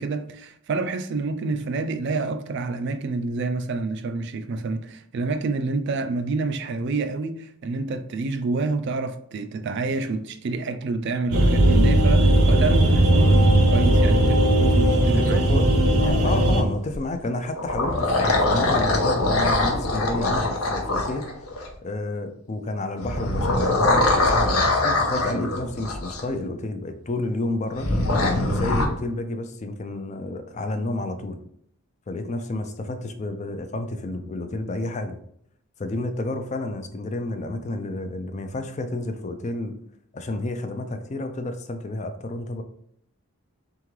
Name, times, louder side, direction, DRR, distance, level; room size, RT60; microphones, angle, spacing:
voice 1, 0.0-15.4, right 3 dB, 50° right, 0.3 m, -28 dB
sound 1, 11.3-16.6, right 1 dB, 80° right, 0.7 m, -17 dB
voice 2, 15.1-15.6 16.2-21.3 21.8-27.9 28.4-31.4 32.1-35.2 35.8-39.7 40.1-42.6, left 2 dB, 30° left, 0.4 m, -30 dB
sound 2, 16.0-17.0 17.5-21.7 23.0-26.2 27.8-28.8, left 2 dB, 75° left, 0.9 m, -23 dB
3.7 x 3.6 x 3.1 m
head